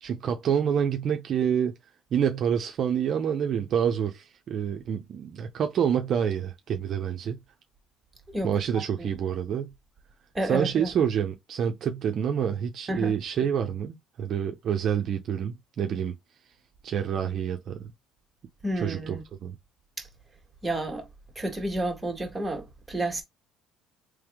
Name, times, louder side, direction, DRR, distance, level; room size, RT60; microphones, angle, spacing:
voice 1, 0.0-1.7 2.1-7.4 8.4-9.7 10.4-16.1 16.8-17.8 18.8-19.5, right 8 dB, 50° right, 0.7 m, -27 dB
voice 2, 10.3-10.9 12.9-13.1 18.6-19.2 20.0-20.1 20.6-21.1 21.4-23.2, right 1 dB, 10° right, 1.8 m, -30 dB
3.4 x 3.3 x 3.6 m
cardioid pair, 105°, 0 cm